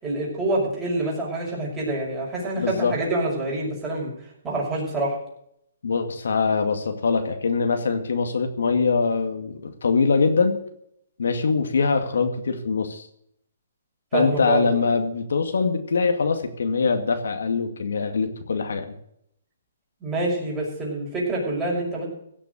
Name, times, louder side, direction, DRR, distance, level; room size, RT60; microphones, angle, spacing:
voice 1, 0.0-4.1 4.4-5.2 14.1-14.7 20.0-22.1, right 2 dB, 10° right, -4 dB, 6.1 m, -26 dB
voice 2, 2.6-3.0 5.8-10.6 11.2-13.1 14.1-18.9, left 4 dB, 80° left, 6 dB, 2.2 m, -23 dB
16.5 x 6.9 x 8.0 m, 0.71 s
hypercardioid pair, 160°, 0 cm